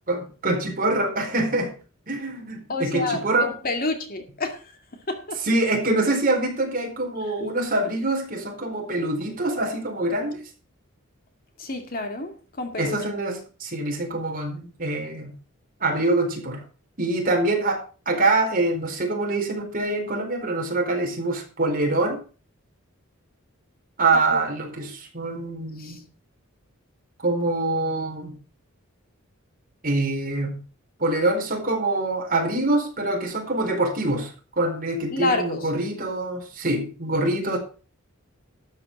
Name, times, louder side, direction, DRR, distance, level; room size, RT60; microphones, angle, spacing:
voice 1, 0.1-1.7 2.1-3.5 5.4-10.4 12.8-15.3 15.8-16.6 17.0-17.8 18.1-22.2 24.0-26.0 27.2-28.3 29.8-30.6 31.0-37.6, right 2 dB, 40° right, 4.4 m, -25 dB
voice 2, 2.7-4.8 5.1-5.4 11.6-13.0 24.1-24.4 25.8-26.0 35.1-35.7, left 2 dB, 40° left, 2.3 m, -29 dB
13.0 x 8.4 x 5.4 m
head